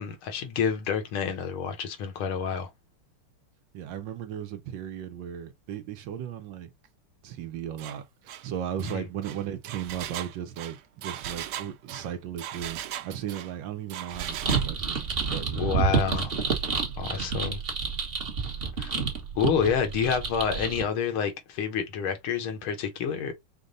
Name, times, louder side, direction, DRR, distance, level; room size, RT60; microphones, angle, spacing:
voice 1, 0.0-2.7 8.8-9.1 15.6-16.4 17.0-17.6 18.8-19.0 19.4-23.3, left 7 dB, 75° left, 1.7 m, -28 dB
voice 2, 3.7-6.7 7.2-15.8 16.9-17.1, right 9 dB, 70° right, 1.2 m, -36 dB
Engine, 7.8-8.0 8.3-8.5 8.8-13.5 13.9-14.7, right 11 dB, 90° right, 0.9 m, -38 dB
sound 1, 14.1-20.8, right 6 dB, 35° right, 1.0 m, -29 dB
5.2 x 2.1 x 3.8 m
omnidirectional pair, 2.4 m